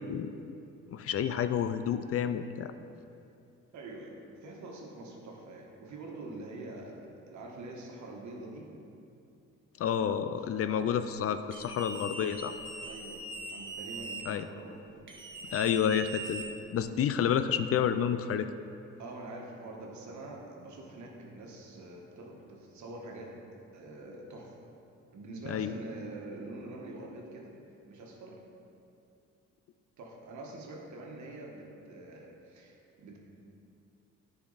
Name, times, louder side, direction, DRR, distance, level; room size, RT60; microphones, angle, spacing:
voice 1, 0.9-2.7 9.8-12.5 14.3-14.5 15.5-16.4 16.7-18.5 25.5-25.7, left 8 dB, 50° left, 10 dB, 0.4 m, -29 dB
voice 2, 3.7-8.7 10.4-10.9 12.8-15.9 19.0-23.4 23.7-24.6 25.1-27.6 27.9-28.4 30.0-33.2, right 2 dB, 70° right, -1 dB, 1.4 m, -45 dB
sound 1, 11.5-14.2 15.1-16.9, right 2 dB, 40° right, 1.4 m, -41 dB
9.8 x 5.0 x 4.0 m, 2.6 s
cardioid pair, 90°, 30 cm